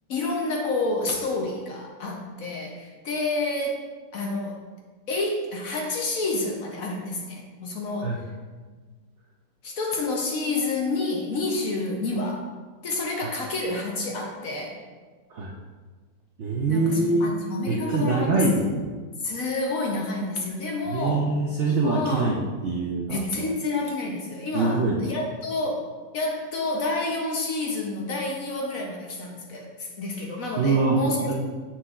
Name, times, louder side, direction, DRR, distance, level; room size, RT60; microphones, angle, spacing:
voice 1, 0.1-3.9 4.1-4.5 5.1-8.1 9.6-12.5 12.8-14.8 16.7-18.4 19.2-21.3 21.7-22.4 23.1-25.9 26.1-31.3, left 2 dB, 60° left, 0 dB, 1.0 m, -29 dB
voice 2, 16.4-17.3 17.7-18.9 20.9-22.4 22.6-23.2 24.5-25.0 30.6-31.3, right 3 dB, 75° right, -1 dB, 0.6 m, -24 dB
7.6 x 5.8 x 2.4 m, 1.4 s
omnidirectional pair, 2.0 m